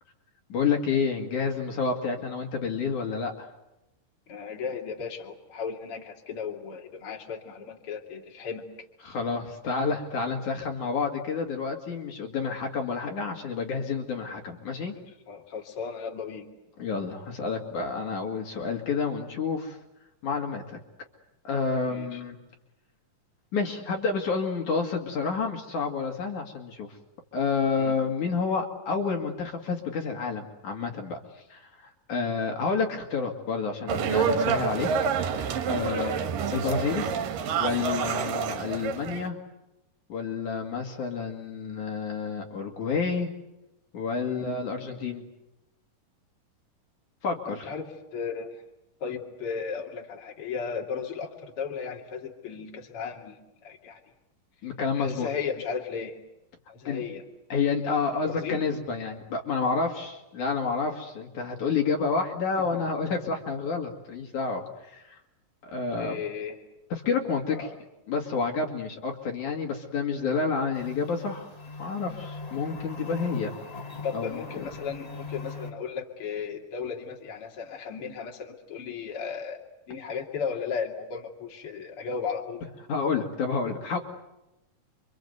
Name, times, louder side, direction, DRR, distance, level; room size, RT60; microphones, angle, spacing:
voice 1, 0.5-3.5 9.0-14.9 16.8-19.8 20.2-20.8 21.5-22.4 23.5-27.0 27.3-31.2 31.5-31.7 32.1-34.9 35.1-36.1 36.5-37.1 37.6-39.4 40.1-43.3 43.9-45.2 47.2-47.7 54.6-55.3 56.9-57.0 57.5-65.2 65.6-66.2 66.9-67.7 68.1-71.5 71.8-73.5 74.1-74.6 82.9-84.0, left 5 dB, 60° left, 2 dB, 3.7 m, -29 dB
voice 2, 4.3-8.6 15.3-16.5 21.8-22.2 27.8-28.0 35.9-36.2 44.3-44.5 47.5-48.6 49.0-54.0 54.9-56.2 56.7-57.2 57.8-58.0 58.2-58.6 62.7-62.8 66.0-66.6 67.5-67.7 74.0-79.6 79.9-82.7, left 6 dB, 40° left, 0 dB, 3.4 m, -35 dB
sound 1, 33.9-39.3, right 6 dB, 75° right, 3.1 m, -28 dB
sound 2, 70.7-75.7, left 3 dB, 10° left, 2.2 m, -39 dB
29.0 x 25.5 x 8.1 m, 0.92 s
omnidirectional pair, 4.0 m